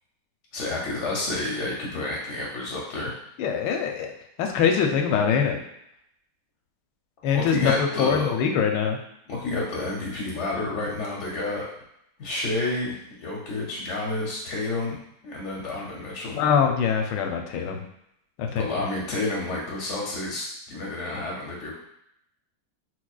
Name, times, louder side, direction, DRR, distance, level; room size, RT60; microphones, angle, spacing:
voice 1, 0.5-3.1 7.3-8.3 9.3-11.7 12.2-15.0 15.2-16.4 18.5-21.7, left 2 dB, 60° left, -3 dB, 0.7 m, -30 dB
voice 2, 3.4-4.1 4.4-5.6 7.2-9.0 16.4-17.8 18.4-18.6, left 7 dB, 85° left, 3 dB, 1.2 m, -23 dB
6.0 x 2.1 x 2.3 m, 0.77 s
omnidirectional pair, 1.9 m